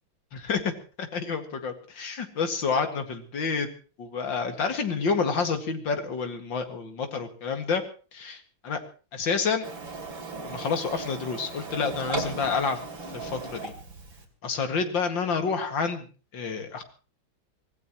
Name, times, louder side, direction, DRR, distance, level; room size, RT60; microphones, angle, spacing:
voice 1, 0.3-0.7 1.0-3.7 4.0-7.8 8.1-8.8 9.1-9.7 10.4-12.8 13.1-13.7 14.4-16.1 16.3-16.8, left 5 dB, 65° left, 6 dB, 2.8 m, -29 dB
Printer, 9.6-14.2, right 4 dB, 70° right, 3.6 m, -37 dB
25.0 x 17.0 x 3.1 m, 0.37 s
omnidirectional pair, 2.2 m